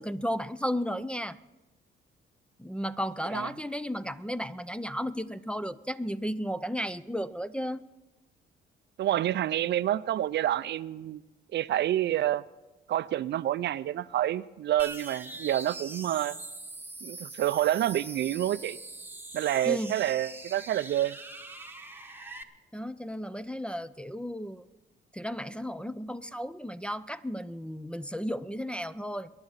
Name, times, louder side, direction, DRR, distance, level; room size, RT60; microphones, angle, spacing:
voice 1, 0.0-1.4 2.6-7.8 19.7-19.9 22.7-24.6 25.1-29.3, equal, 5° left, 0.4 m, -34 dB
voice 2, 9.0-11.2 11.5-12.4 12.9-16.4 17.0-18.8 19.3-21.2, right 12 dB, 60° right, 0.4 m, -28 dB
sound 1, 14.8-22.4, right 2 dB, 10° right, 1.0 m, -43 dB
22.5 x 10.5 x 4.1 m
cardioid pair, 90°, 20 cm